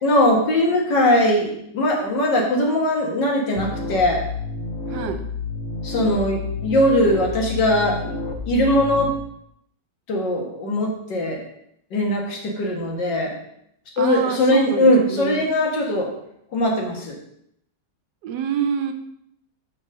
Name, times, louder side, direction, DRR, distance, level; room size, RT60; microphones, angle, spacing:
voice 1, 0.0-4.2 5.8-8.1 8.5-9.1 10.1-11.4 11.9-13.4 14.0-16.1 16.5-17.2, left 1 dB, 80° left, 0 dB, 2.2 m, -20 dB
sound 1, 3.6-9.1, left 3 dB, 55° left, 0.8 m, -30 dB
voice 2, 4.9-5.2 14.0-15.6 18.2-18.9, right 7 dB, 70° right, 7 dB, 1.2 m, -27 dB
5.4 x 4.7 x 6.3 m, 0.73 s
omnidirectional pair, 1.9 m